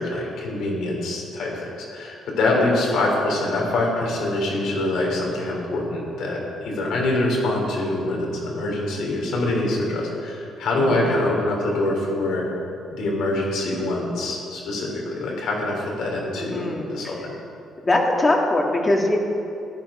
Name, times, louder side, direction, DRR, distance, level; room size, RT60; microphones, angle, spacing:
voice 1, 0.0-12.4 12.9-17.3, left 2 dB, 80° left, -1 dB, 3.6 m, -24 dB
voice 2, 10.7-11.1 16.4-17.2 17.8-19.2, left 2 dB, 25° left, 0 dB, 2.2 m, -22 dB
14.5 x 11.0 x 5.0 m, 2.7 s
cardioid pair, 90°, 0 cm